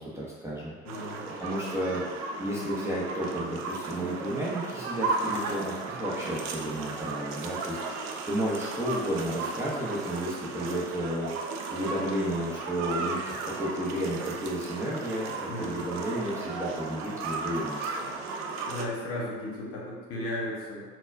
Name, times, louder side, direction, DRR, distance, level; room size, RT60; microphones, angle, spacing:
voice 1, 0.0-0.7 1.4-2.0 2.4-18.2, equal, 10° right, -8 dB, 0.7 m, -32 dB
voice 2, 0.8-1.3 5.4-5.5 15.5-15.8 18.7-20.8, left 1 dB, 40° left, -4 dB, 1.0 m, -35 dB
sound 1, 0.9-18.9, right 4 dB, 50° right, 0.4 m, -35 dB
4.0 x 2.3 x 2.4 m, 1.5 s
hypercardioid pair, 80°, 35 cm